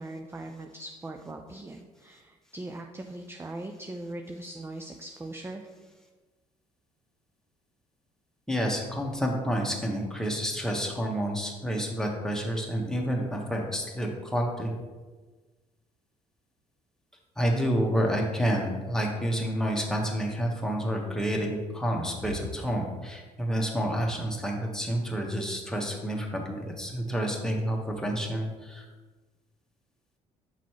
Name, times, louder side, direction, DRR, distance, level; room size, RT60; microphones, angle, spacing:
voice 1, 0.0-5.7, right 2 dB, 15° right, 4 dB, 0.4 m, -40 dB
voice 2, 8.5-14.7 17.4-28.8, equal, 5° left, 0 dB, 1.3 m, -29 dB
5.9 x 5.7 x 3.0 m, 1.3 s
hypercardioid pair, 55°, 18 cm